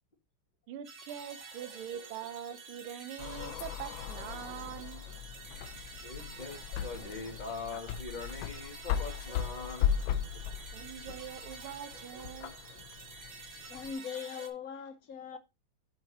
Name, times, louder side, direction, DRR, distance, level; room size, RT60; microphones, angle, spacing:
voice 1, 0.7-5.0 10.7-12.5, right 10 dB, 80° right, 1.7 m, -43 dB
sound 1, 0.8-14.5, right 4 dB, 40° right, 1.5 m, -49 dB
sound 2, 3.2-13.9, left 9 dB, 75° left, 1.3 m, -37 dB
voice 2, 6.0-9.9 10.3-10.4, left 4 dB, 20° left, 2.0 m, -42 dB
voice 3, 13.7-15.4, left 7 dB, 55° left, 1.0 m, -40 dB
7.7 x 5.1 x 4.2 m
omnidirectional pair, 2.3 m